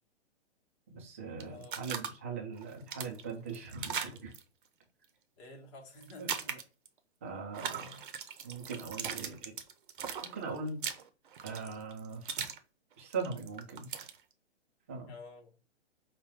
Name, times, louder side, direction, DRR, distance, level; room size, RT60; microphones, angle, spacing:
voice 1, 0.9-4.3 6.2-6.5 7.2-8.0 8.4-9.6 10.3-10.8 11.4-12.4 13.0-13.9 14.9-15.1, right 4 dB, 15° right, 0.3 m, -40 dB
sound 1, 1.4-2.1 2.6-4.4 6.0-6.9 7.5-12.6 12.9-14.2, right 7 dB, 45° right, 0.7 m, -39 dB
voice 2, 1.5-1.8 5.4-6.6 15.1-15.6, left 2 dB, 25° left, 0.9 m, -51 dB
5.1 x 2.1 x 3.3 m
figure-of-eight pair, 125°, 35 cm